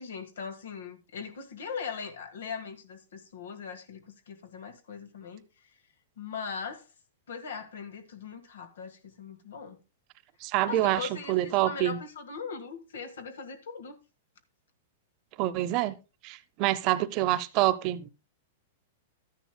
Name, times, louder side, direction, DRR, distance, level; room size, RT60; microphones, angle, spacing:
voice 1, 0.0-5.4 6.2-6.9 7.3-9.8 10.6-14.0, left 6 dB, 85° left, 1.5 m, -40 dB
voice 2, 10.4-11.0 11.3-12.0 15.4-15.9 16.2-18.1, right 15 dB, 35° right, 0.7 m, -26 dB
13.0 x 10.0 x 2.2 m
supercardioid pair, 155°, 0 cm